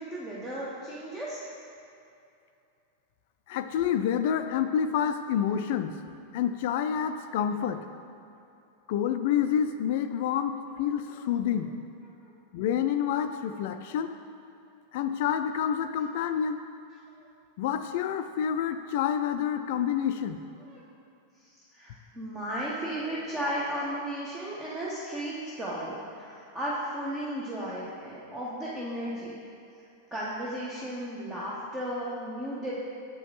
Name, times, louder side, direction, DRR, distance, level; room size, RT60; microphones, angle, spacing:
voice 1, 0.0-1.4 12.2-12.3 13.9-14.0 20.6-20.8 21.6-29.4 30.1-32.8, right 1 dB, 15° right, -7 dB, 0.8 m, -35 dB
voice 2, 3.5-5.9 6.3-7.8 8.9-11.7 12.5-14.1 14.9-16.6 17.6-20.4, left 9 dB, 50° left, 9 dB, 0.3 m, -28 dB
7.6 x 5.0 x 2.9 m, 2.6 s
figure-of-eight pair, 90°, 0 cm